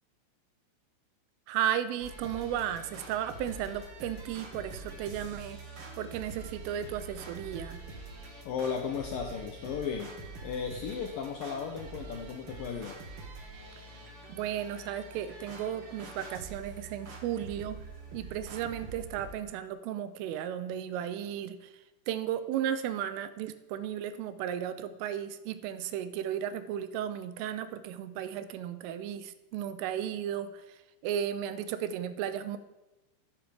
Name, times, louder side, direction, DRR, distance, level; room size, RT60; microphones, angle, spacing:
voice 1, 1.5-5.6 6.0-7.8 14.3-17.8 18.1-21.7 22.1-32.6, right 10 dB, 85° right, 11 dB, 3.5 m, -34 dB
sound 1, 2.0-19.4, right 3 dB, 40° right, 2.3 m, -45 dB
voice 2, 8.5-13.0, left 6 dB, 80° left, 3 dB, 2.0 m, -35 dB
14.0 x 10.5 x 7.4 m, 1.0 s
omnidirectional pair, 5.7 m